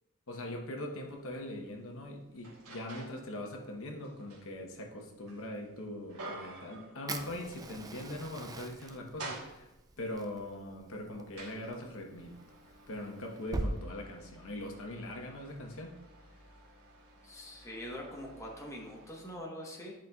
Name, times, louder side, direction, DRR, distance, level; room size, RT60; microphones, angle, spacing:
voice 1, 0.3-9.7 10.0-12.3 12.9-15.9, left 1 dB, 65° left, 2 dB, 1.0 m, -41 dB
sound 1, 1.0-1.1 1.7-3.3 3.6-7.8 8.1-8.2 8.6-10.0 10.7-19.4, right 2 dB, 80° right, 1.4 m, -50 dB
Fire, 7.1-13.7, right 2 dB, 15° right, 0.4 m, -43 dB
voice 2, 17.2-19.9, equal, 15° left, -2 dB, 1.1 m, -43 dB
10.5 x 5.3 x 2.3 m, 1.0 s
head